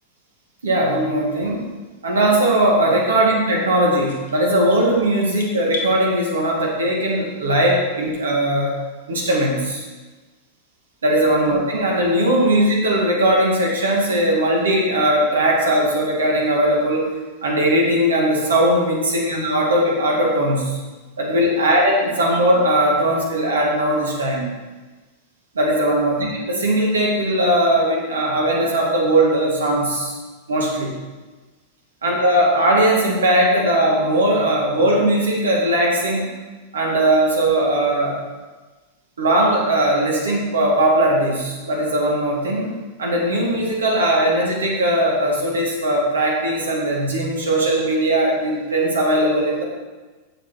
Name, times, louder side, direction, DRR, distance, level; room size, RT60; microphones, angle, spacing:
voice 1, 0.6-1.7 2.0-8.8 9.1-9.8 11.0-17.1 17.4-20.8 21.2-24.5 25.5-30.1 30.5-30.9 32.0-36.3 36.7-38.2 39.2-42.7 43.0-49.6, right 1 dB, 70° right, -2 dB, 2.2 m, -19 dB
sound 1, 4.1-5.9, left 4 dB, 65° left, 1.4 m, -34 dB
10.0 x 7.4 x 4.5 m, 1.3 s
figure-of-eight pair, 90°, 0 cm